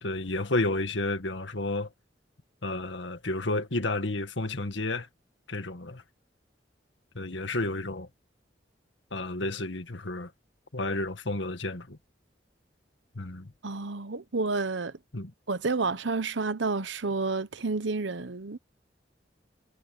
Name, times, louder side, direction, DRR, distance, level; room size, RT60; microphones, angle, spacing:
voice 1, 0.0-1.9 2.6-5.1 5.5-6.0 7.1-8.1 9.1-10.3 10.7-12.0 13.1-13.5 15.1-15.3, left 2 dB, 90° left, 2.0 m, -31 dB
voice 2, 13.6-14.9 15.5-18.6, right 3 dB, 85° right, 1.0 m, -30 dB
head